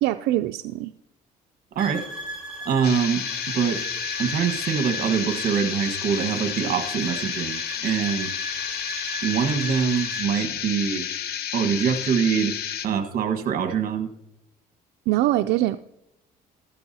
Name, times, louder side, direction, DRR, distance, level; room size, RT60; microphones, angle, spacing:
voice 1, 0.0-0.9 15.1-15.8, right 15 dB, 85° right, 9 dB, 0.4 m, -23 dB
sound 1, 1.8-10.3, right 1 dB, ahead, 4.8 m, -36 dB
voice 2, 2.6-3.2 3.5-3.8 4.2-8.3 9.2-11.1 11.5-12.5 12.8-14.1, right 7 dB, 55° right, 8 dB, 1.4 m, -24 dB
sound 2, 2.8-12.9, left 10 dB, 70° left, 0.9 m, -31 dB
13.5 x 12.5 x 2.8 m, 0.86 s
cardioid pair, 110°, 17 cm